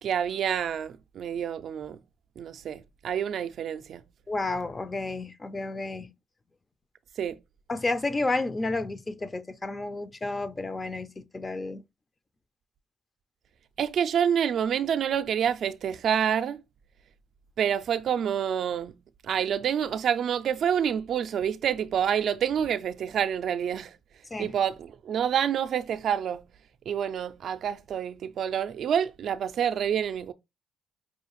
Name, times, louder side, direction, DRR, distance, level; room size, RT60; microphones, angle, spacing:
voice 1, 0.0-2.0 2.4-4.0 7.2-7.4 13.8-16.6 17.6-19.0 19.2-24.0 24.4-26.5 26.9-30.3, right 8 dB, 65° right, 0.3 m, -28 dB
voice 2, 4.3-6.1 7.7-11.8 24.3-24.5, left 2 dB, 25° left, 0.4 m, -31 dB
5.4 x 2.4 x 3.0 m
cardioid pair, 90°, 0 cm